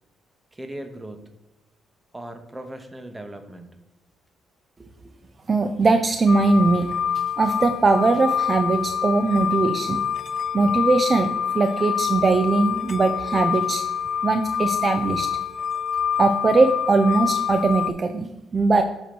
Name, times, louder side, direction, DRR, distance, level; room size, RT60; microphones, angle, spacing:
voice 1, 0.5-1.3 2.1-3.8 4.8-5.1, right 1 dB, 15° right, 6 dB, 1.0 m, -38 dB
voice 2, 5.5-10.0 10.5-13.8 14.2-15.3 16.2-18.8, right 3 dB, 35° right, 6 dB, 0.5 m, -20 dB
sound 1, 6.3-17.9, left 8 dB, 55° left, 0.4 m, -26 dB
8.4 x 3.0 x 5.9 m, 0.98 s
cardioid pair, 90°, 0 cm